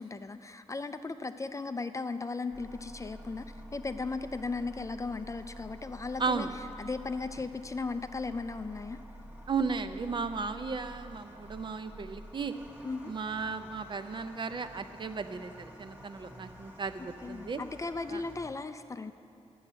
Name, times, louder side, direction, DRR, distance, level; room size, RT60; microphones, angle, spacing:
voice 1, 0.0-6.5 6.8-9.0 12.8-13.1 17.2-19.1, left 3 dB, 25° left, 10 dB, 0.3 m, -36 dB
sound 1, 2.5-18.5, equal, 15° right, 1.1 m, -49 dB
voice 2, 6.2-6.5 9.5-12.5 13.0-17.6 18.1-18.2, right 4 dB, 45° right, 9 dB, 0.5 m, -35 dB
12.0 x 6.3 x 8.7 m, 2.6 s
wide cardioid pair, 165°, 12 cm